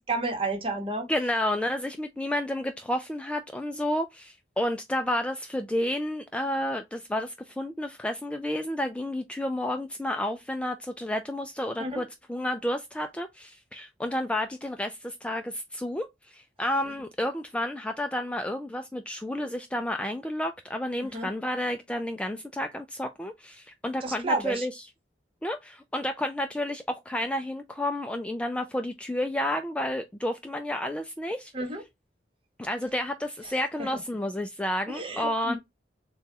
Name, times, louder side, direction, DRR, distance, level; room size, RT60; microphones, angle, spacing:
voice 1, 0.1-1.1 11.8-12.0 21.1-21.3 24.0-24.7 31.5-31.8 33.8-33.9 34.9-35.6, right 2 dB, 30° right, 1.1 m, -30 dB
voice 2, 1.1-24.7 25.4-31.5 32.6-35.6, left 1 dB, 5° left, 0.3 m, -31 dB
6.9 x 2.3 x 2.8 m
head